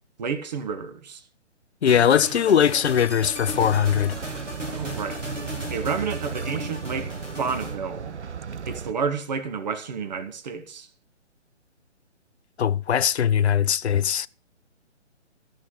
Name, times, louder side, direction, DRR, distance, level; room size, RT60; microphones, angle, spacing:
voice 1, 0.2-1.2 4.7-5.3 5.7-8.2 8.7-10.9, right 5 dB, 35° right, 1.3 m, -30 dB
voice 2, 1.8-4.2 12.6-14.3, left 8 dB, 65° left, 0.5 m, -20 dB
sound 1, 1.8-7.7, equal, 90° right, 3.8 m, -36 dB
sound 2, 3.5-8.9, right 6 dB, 70° right, 0.7 m, -35 dB
13.5 x 6.3 x 7.2 m
figure-of-eight pair, 140°, 36 cm